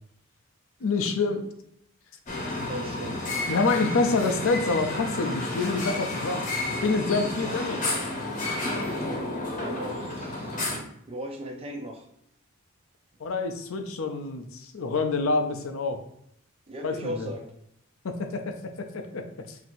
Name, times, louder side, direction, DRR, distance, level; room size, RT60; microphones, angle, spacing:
voice 1, 0.8-1.4 3.5-8.0 13.2-16.0 16.8-17.3 18.0-19.6, left 3 dB, 65° left, 7 dB, 0.5 m, -27 dB
sound 1, 2.3-10.8, left 2 dB, 35° left, 0.9 m, -31 dB
voice 2, 2.7-3.2 7.4-7.6 9.6-10.6 11.1-12.1 16.7-17.5, equal, 25° right, 3 dB, 0.5 m, -37 dB
5.8 x 2.7 x 2.6 m, 0.74 s
head